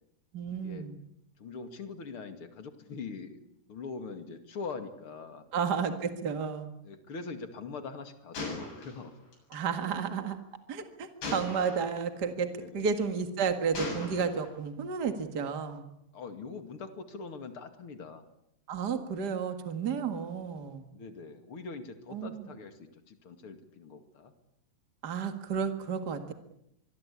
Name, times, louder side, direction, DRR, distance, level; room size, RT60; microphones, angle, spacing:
voice 1, 0.3-0.9 5.5-6.7 9.5-10.4 10.7-12.5 12.7-15.8 18.7-20.9 22.1-22.5 25.0-26.3, right 6 dB, 45° right, 7 dB, 1.3 m, -32 dB
voice 2, 1.4-3.4 3.7-5.4 6.8-9.2 12.6-12.9 16.1-18.2 20.9-24.3 26.2-26.3, left 4 dB, 40° left, 8 dB, 2.5 m, -43 dB
Gunshot gunfire, 8.3-9.6 11.2-12.0 12.8-13.2 13.7-14.5, left 3 dB, 80° left, 9.7 m, -38 dB
25.5 x 23.0 x 8.6 m, 0.79 s
omnidirectional pair, 4.7 m